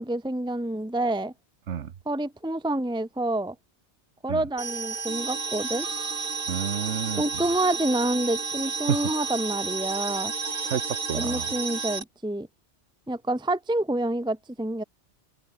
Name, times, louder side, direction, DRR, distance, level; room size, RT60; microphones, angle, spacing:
voice 1, 0.0-1.3 2.1-3.5 4.2-5.9 7.2-10.3 11.1-12.5 13.1-14.8, right 1 dB, 5° right, 1.0 m, -28 dB
sound 1, 4.6-12.0, right 4 dB, 50° right, 1.8 m, -31 dB
voice 2, 6.5-7.4 8.9-9.0 10.6-11.5, right 8 dB, 85° right, 1.3 m, -30 dB
open air
omnidirectional pair, 1.2 m